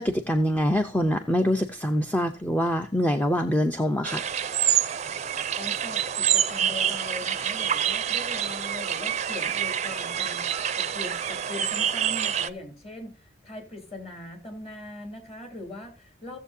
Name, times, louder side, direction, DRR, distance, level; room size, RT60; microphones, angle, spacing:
voice 1, 0.0-4.3, equal, 10° left, 0.6 m, -24 dB
sound 1, 4.0-12.5, right 9 dB, 35° right, 0.5 m, -27 dB
voice 2, 5.6-16.4, left 2 dB, 35° left, 3.1 m, -41 dB
16.5 x 7.3 x 2.7 m
head